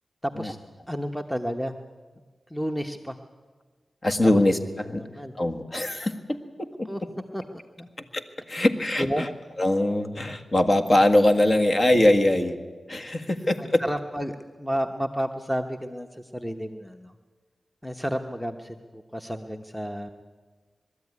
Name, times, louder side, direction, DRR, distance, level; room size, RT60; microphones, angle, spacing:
voice 1, 0.2-0.6 0.9-1.8 2.5-3.2 4.2-4.4 5.0-5.3 6.8-7.0 7.3-7.4 7.8-7.9 8.5-8.7 9.0-9.3 13.2-13.3 13.6-17.1 17.8-20.1, equal, 5° left, 6 dB, 1.0 m, -31 dB
voice 2, 4.0-5.0 5.4-6.9 8.1-9.1 9.6-12.6 12.9-13.8, left 1 dB, 45° left, 7 dB, 1.7 m, -22 dB
21.5 x 13.0 x 9.6 m, 1.4 s
cardioid pair, 50°, 0 cm